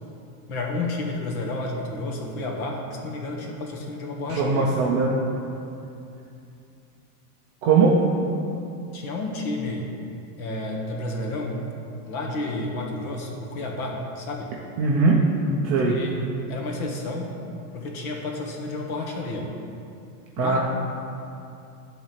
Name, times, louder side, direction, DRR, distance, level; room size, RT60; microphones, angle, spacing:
voice 1, 0.5-4.7 8.9-9.9 10.4-11.6 12.1-14.5 15.8-16.2 16.5-17.4 17.7-19.5 20.4-20.6, left 2 dB, 60° left, 0 dB, 1.8 m, -31 dB
voice 2, 4.4-5.1 7.6-8.0 14.8-15.3 15.6-16.0 20.4-20.6, right 4 dB, 20° right, -4 dB, 0.3 m, -20 dB
11.0 x 4.0 x 7.2 m, 2.6 s
supercardioid pair, 145°, 47 cm